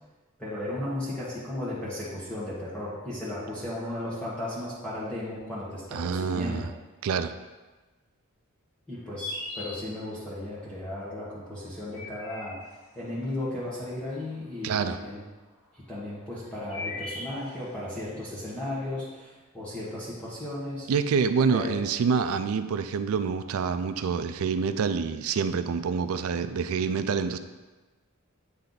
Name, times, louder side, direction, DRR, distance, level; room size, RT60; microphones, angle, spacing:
voice 1, 0.4-6.7 8.9-12.6 12.9-15.2 15.7-20.9 21.5-21.8, left 1 dB, 5° left, -10 dB, 1.3 m, -35 dB
voice 2, 5.9-6.7 7.0-7.3 14.6-15.0 20.9-27.4, right 5 dB, 70° right, 10 dB, 0.4 m, -27 dB
sound 1, 8.9-10.3 11.6-13.0 14.1-14.9 15.9-17.9, left 2 dB, 85° left, 1.7 m, -38 dB
8.7 x 3.3 x 3.9 m, 1.2 s
head